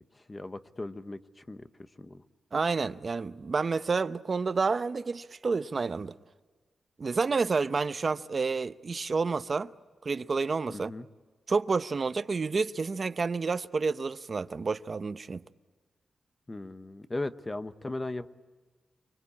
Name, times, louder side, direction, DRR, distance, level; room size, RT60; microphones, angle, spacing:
voice 1, 0.1-1.7 2.0-2.2 10.7-11.1 16.5-18.3, left 2 dB, 20° left, 1.0 m, -37 dB
voice 2, 2.5-6.1 7.0-9.7 10.0-10.9 11.5-15.4, right 4 dB, 40° right, 0.8 m, -29 dB
29.0 x 23.5 x 8.6 m
wide cardioid pair, 135°, 0 cm